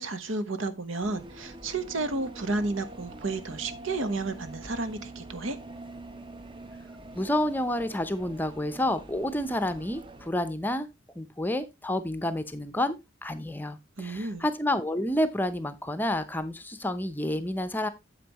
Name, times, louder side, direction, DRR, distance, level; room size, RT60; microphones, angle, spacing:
voice 1, 0.0-5.6 14.0-14.5, right 3 dB, 75° right, 1.2 m, -32 dB
sound 1, 1.0-10.3, right 2 dB, 25° right, 0.8 m, -45 dB
voice 2, 7.1-10.9 11.2-13.0 13.2-17.9, left 1 dB, 10° left, 0.6 m, -29 dB
9.1 x 7.7 x 3.0 m
head